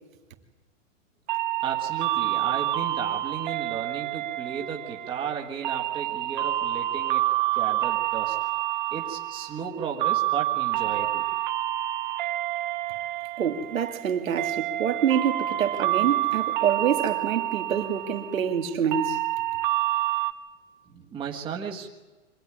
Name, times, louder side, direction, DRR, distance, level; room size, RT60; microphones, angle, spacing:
sound 1, 1.3-20.3, right 14 dB, 40° right, 0.9 m, -28 dB
voice 1, 1.6-7.2 7.5-8.3 8.9-11.2 20.9-21.9, right 7 dB, 15° right, 1.7 m, -34 dB
voice 2, 13.4-19.2, right 8 dB, 90° right, 2.7 m, -26 dB
24.5 x 16.0 x 10.0 m
hypercardioid pair, 165°, 39 cm